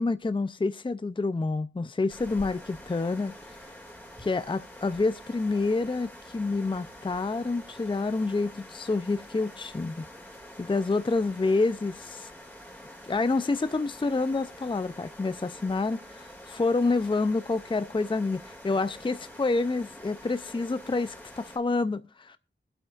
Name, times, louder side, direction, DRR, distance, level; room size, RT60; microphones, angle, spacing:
voice 1, 0.0-3.3 4.2-10.0 10.6-12.3 13.0-22.4, left 3 dB, 25° left, 0.4 m, -28 dB
sound 1, 2.1-21.6, equal, 10° left, 2.1 m, -47 dB
23.0 x 8.8 x 2.4 m
wide cardioid pair, 55°, 20 cm